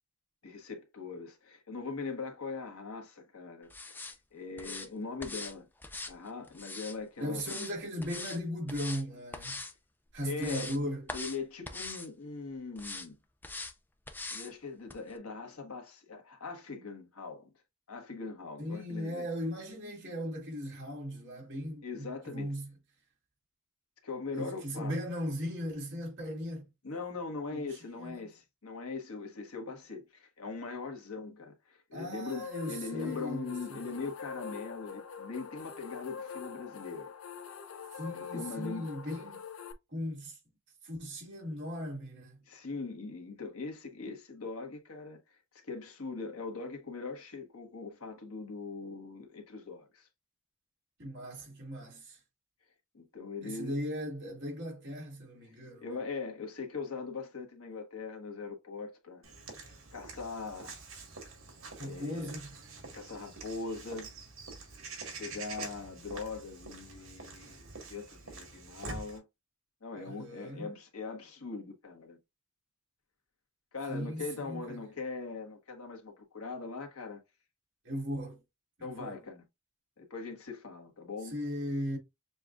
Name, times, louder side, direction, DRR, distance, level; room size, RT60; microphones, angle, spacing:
voice 1, 0.4-5.7 6.1-7.7 10.2-10.8 11.1-13.2 14.3-17.5 17.9-19.3 21.8-22.5 24.0-25.0 26.8-37.1 38.1-38.9 42.5-50.1 52.9-53.8 55.5-59.2 59.6-60.9 61.8-62.3 62.9-64.1 65.2-69.2 69.8-72.2 73.7-77.2 78.8-79.4 80.0-81.4, left 4 dB, 90° left, 1.3 m, -41 dB
sound 1, 3.7-4.2 4.6-4.9 5.2-5.5 5.8-7.0 7.4-7.7 8.0-8.4 8.7-9.0 9.3-9.7 10.1-10.8 11.1-11.4 11.7-12.1 12.8-13.1 13.4-13.7 14.1-14.5 14.9-15.0, left 3 dB, 10° left, 0.4 m, -41 dB
voice 2, 7.2-9.6 10.1-11.1 18.6-22.7 24.3-26.6 27.5-28.3 31.9-33.9 37.9-39.4 39.9-40.4 40.8-42.4 51.0-52.2 53.4-55.9 61.8-62.5 69.9-70.7 73.9-74.8 77.8-78.4 78.8-79.2 81.2-82.0, equal, 55° right, 2.0 m, -38 dB
sound 2, 32.3-39.7, left 6 dB, 75° left, 0.6 m, -44 dB
Walk footsteps / Bird vocalization bird call bird song, 59.2-69.2, right 3 dB, 75° right, 1.7 m, -46 dB
6.8 x 2.4 x 2.4 m
head